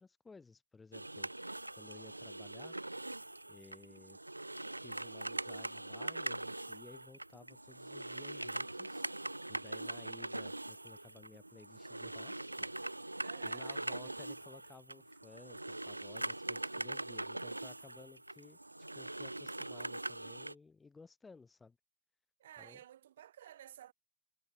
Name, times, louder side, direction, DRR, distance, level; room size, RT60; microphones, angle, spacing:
voice 1, 0.0-2.8 3.5-4.2 4.8-9.0 9.5-13.1 13.4-18.6 18.9-21.8 22.6-22.8, left 4 dB, 10° left, 4.0 m, -57 dB
sound 1, 0.9-20.5, right 2 dB, 85° right, 1.0 m, -42 dB
voice 2, 9.8-10.3 13.2-14.2 22.4-23.9, right 11 dB, 60° right, 2.1 m, -54 dB
figure-of-eight pair, 90°, 0 cm